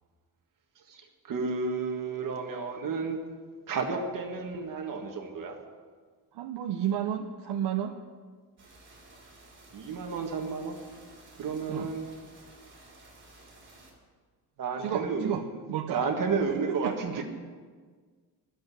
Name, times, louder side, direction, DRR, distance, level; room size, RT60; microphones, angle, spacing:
voice 1, 0.9-3.2 3.7-5.6 9.7-10.8 11.4-12.1 14.6-15.3 15.9-17.2, right 4 dB, 55° right, 3 dB, 1.7 m, -31 dB
voice 2, 6.3-8.0 11.7-11.9 14.8-16.0 16.7-17.0, right 10 dB, 80° right, 4 dB, 0.9 m, -32 dB
sound 1, 8.6-13.9, right 2 dB, 30° right, 3.6 m, -54 dB
11.5 x 7.8 x 9.9 m, 1.6 s
cardioid pair, 170°, 40 cm